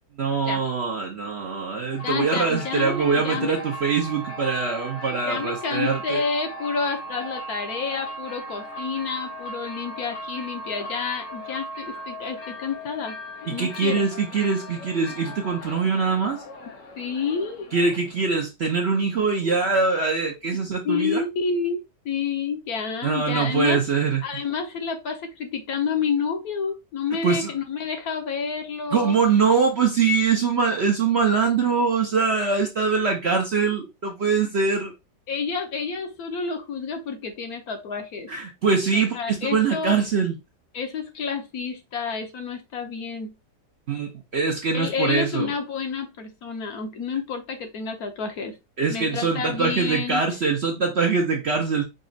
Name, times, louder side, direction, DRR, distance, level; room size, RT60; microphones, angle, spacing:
voice 1, 0.2-6.2 13.5-16.4 17.7-21.2 23.0-24.2 27.2-27.5 28.9-34.9 38.3-40.3 43.9-45.5 48.8-51.8, right 5 dB, 55° right, 0.8 m, -23 dB
sound 1, 1.9-18.3, equal, 85° left, 1.9 m, -38 dB
voice 2, 2.0-3.6 5.3-13.2 13.4-14.1 17.0-17.7 20.8-21.8 22.0-23.8 24.2-29.2 35.3-38.3 38.9-40.0 40.7-43.3 44.7-48.6 48.9-50.2, left 5 dB, 65° left, 1.3 m, -29 dB
5.2 x 2.4 x 3.8 m
omnidirectional pair, 1.8 m